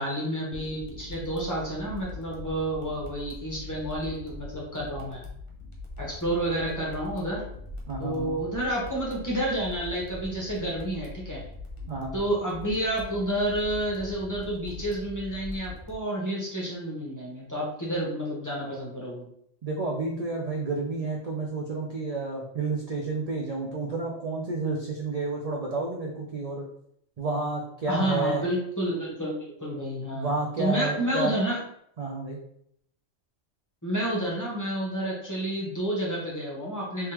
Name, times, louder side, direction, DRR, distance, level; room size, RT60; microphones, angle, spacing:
voice 1, 0.0-5.2 6.0-7.4 8.0-11.4 12.1-19.2 27.9-31.6 33.8-37.1, right 1 dB, 15° left, -4 dB, 1.0 m, -30 dB
sound 1, 0.5-15.9, left 2 dB, 30° left, 0.6 m, -42 dB
voice 2, 7.9-8.4 11.9-12.1 19.6-26.6 27.2-28.4 30.1-31.3 32.0-32.4, right 3 dB, 60° right, -2 dB, 0.4 m, -30 dB
3.5 x 3.1 x 2.9 m, 0.70 s
omnidirectional pair, 1.4 m